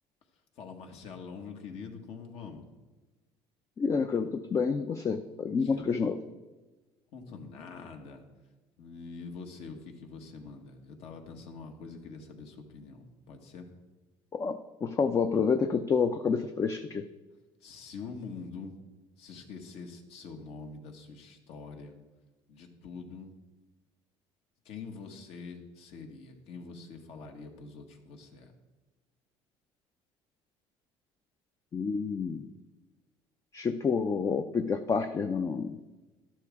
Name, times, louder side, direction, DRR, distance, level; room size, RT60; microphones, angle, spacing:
voice 1, 0.6-2.7 5.6-5.9 7.1-8.2 8.8-13.7 17.6-18.8 19.2-22.0 22.5-23.3 24.6-28.5, left 4 dB, 65° left, 3 dB, 1.7 m, -45 dB
voice 2, 3.8-6.2 14.3-17.0 31.7-32.5 33.5-35.8, left 5 dB, 30° left, 8 dB, 0.5 m, -29 dB
12.0 x 11.5 x 3.6 m, 1.2 s
cardioid pair, 130°, 11 cm